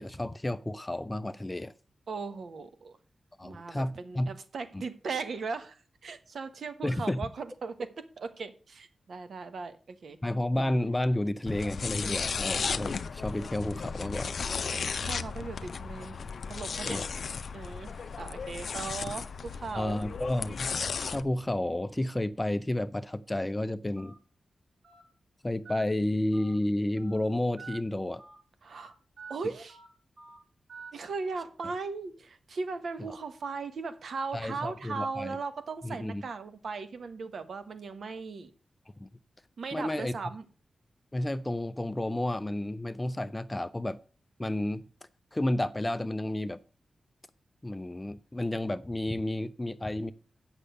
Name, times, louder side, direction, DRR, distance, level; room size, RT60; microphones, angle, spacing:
voice 1, 0.0-1.7 3.4-4.3 6.8-7.3 10.2-14.4 16.8-17.1 19.7-20.7 21.1-24.1 25.4-28.2 34.3-35.4 35.8-36.2 39.0-39.1 39.7-40.2 41.1-44.0 44.4-44.8 45.3-46.6 47.6-50.1, left 1 dB, 15° left, 0.5 m, -31 dB
voice 2, 2.1-3.0 3.4-10.2 14.6-16.2 16.5-17.0 17.5-20.1 28.6-28.9 29.3-29.8 30.9-38.5 39.6-40.4, right 4 dB, 75° right, 1.1 m, -38 dB
sound 1, 11.5-21.2, left 5 dB, 70° left, 0.5 m, -35 dB
Telephone, 24.0-24.1 24.8-25.0 25.6-25.8 26.3-26.5 27.0-27.2 27.6-27.8 28.2-28.4 28.7-28.9 29.2-29.3 29.7-29.9 30.2-30.4 30.7-30.9, right 5 dB, 50° right, 2.5 m, -47 dB
8.4 x 6.4 x 6.5 m
cardioid pair, 75°, 0 cm